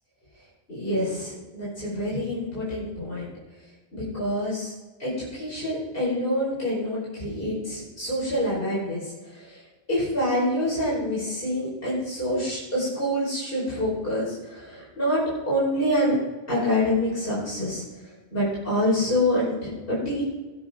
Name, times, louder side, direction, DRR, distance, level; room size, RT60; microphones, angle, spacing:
voice 1, 0.7-3.3 3.9-4.7 5.0-9.0 9.3-9.6 9.9-15.2 15.5-16.1 16.5-17.8 18.3-20.2, left 1 dB, 55° left, -8 dB, 5.6 m, -26 dB
20.0 x 9.9 x 3.9 m, 1.2 s
omnidirectional pair, 1.1 m